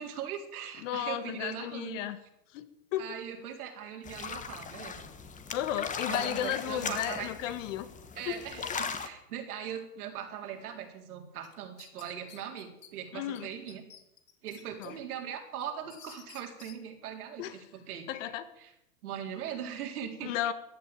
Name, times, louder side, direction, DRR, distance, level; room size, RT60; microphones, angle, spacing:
voice 1, 0.0-2.1 3.0-5.1 6.0-7.3 8.2-13.8 14.4-18.1 18.6-18.7 19.0-20.3, right 9 dB, 65° right, 3 dB, 3.9 m, -40 dB
voice 2, 0.8-2.2 2.5-3.1 5.5-7.9 8.3-8.4 13.1-13.5 14.8-15.0 17.4-17.6 18.1-18.5 20.2-20.5, left 12 dB, 50° left, 12 dB, 1.7 m, -34 dB
sound 1, 4.0-9.1, left 6 dB, 15° left, 1.4 m, -38 dB
sound 2, 11.4-12.9 13.3-13.4 13.7-14.9 15.3-16.8, left 9 dB, 80° left, 2.5 m, -52 dB
15.0 x 9.6 x 9.0 m, 0.83 s
hypercardioid pair, 120°, 47 cm